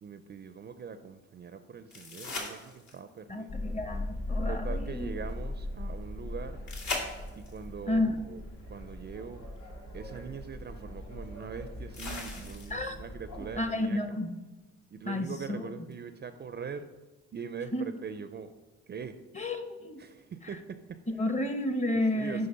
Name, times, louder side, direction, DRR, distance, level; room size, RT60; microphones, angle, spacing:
voice 1, 0.0-3.6 4.5-6.6 7.3-9.4 9.9-14.2 14.9-16.9 17.3-18.5 18.9-19.2 20.0-21.4 22.1-22.5, right 6 dB, 35° right, 10 dB, 0.4 m, -42 dB
sound 1, 1.9-3.2 6.7-7.7 9.6-9.7 11.9-13.0 15.9-16.0, left 3 dB, 65° left, 1.9 m, -38 dB
voice 2, 3.3-5.1 7.9-8.1 12.7-13.0 13.4-14.3 15.1-15.6 17.7-17.9 19.3-20.0 21.2-22.5, left 1 dB, 25° left, 7 dB, 0.9 m, -31 dB
sound 2, 3.5-13.7, left 1 dB, 85° left, 1.9 m, -39 dB
9.3 x 3.3 x 5.6 m, 1.2 s
cardioid pair, 90°, 30 cm